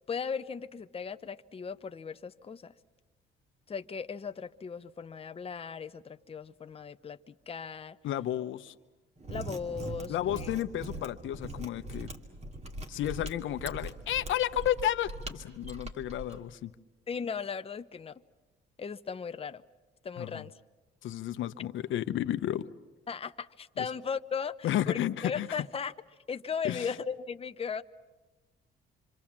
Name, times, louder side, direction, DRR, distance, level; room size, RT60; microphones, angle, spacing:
voice 1, 0.0-2.7 3.7-8.0 9.3-10.5 17.1-18.2 18.8-19.6 20.0-20.5 23.1-25.9 26.3-27.8, left 6 dB, 30° left, 9 dB, 0.8 m, -37 dB
voice 2, 8.0-8.7 10.1-12.1 12.9-16.7 20.2-20.4 21.0-22.7 23.8-23.9 24.6-25.6 26.6-26.9, left 12 dB, 75° left, 11 dB, 0.9 m, -32 dB
Mechanisms, 9.2-16.4, right 1 dB, 35° right, 2.8 m, -41 dB
26.5 x 26.5 x 7.4 m, 1.1 s
cardioid pair, 90°, 20 cm